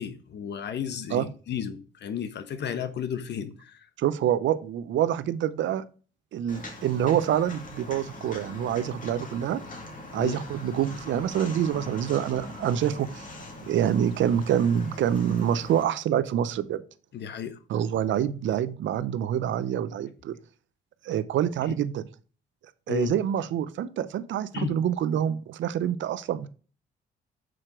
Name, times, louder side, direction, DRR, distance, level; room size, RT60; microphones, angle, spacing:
voice 1, 0.0-3.9 10.2-10.4 17.1-17.6 22.9-23.1 24.5-24.8, left 8 dB, 60° left, 1.1 m, -33 dB
voice 2, 4.0-5.8 6.3-9.6 10.1-13.3 13.6-16.8 17.7-20.4 21.0-22.1 22.9-26.5, right 10 dB, 70° right, 0.6 m, -26 dB
Walk footsteps, 6.5-15.8, left 2 dB, 40° left, 2.2 m, -42 dB
6.3 x 4.5 x 5.0 m
cardioid pair, 90°, 20 cm